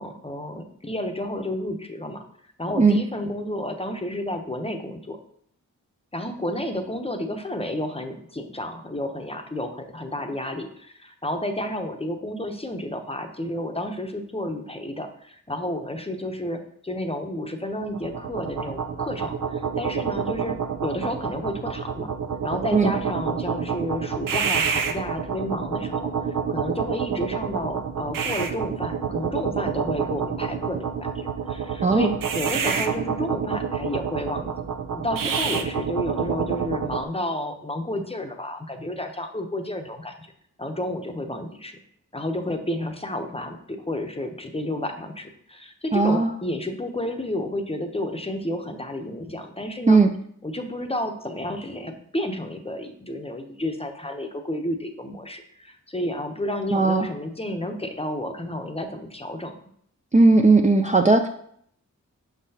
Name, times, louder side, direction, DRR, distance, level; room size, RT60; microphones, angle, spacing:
voice 1, 0.0-2.2 2.6-5.2 6.1-22.1 22.4-34.5 34.9-40.3 40.6-41.8 42.1-50.0 50.4-59.5, left 1 dB, 20° left, 5 dB, 0.7 m, -31 dB
sound 1, 17.8-37.0, right 6 dB, 85° right, 0.6 m, -28 dB
voice 2, 31.8-32.1 45.9-46.3 49.9-50.1 56.7-57.0 60.1-61.3, right 3 dB, 25° right, 3 dB, 0.4 m, -17 dB
5.9 x 5.7 x 2.8 m, 0.66 s
wide cardioid pair, 70°, 32 cm